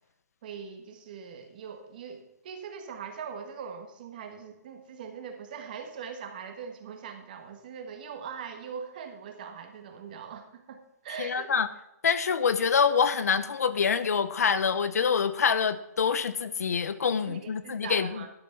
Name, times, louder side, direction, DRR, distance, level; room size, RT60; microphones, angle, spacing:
voice 1, 0.4-11.5 17.2-18.3, right 6 dB, 30° right, 5 dB, 1.4 m, -41 dB
voice 2, 11.2-11.7 12.0-18.2, left 6 dB, 65° left, 13 dB, 1.0 m, -26 dB
12.0 x 6.1 x 5.8 m, 0.87 s
hypercardioid pair, 175°, 9 cm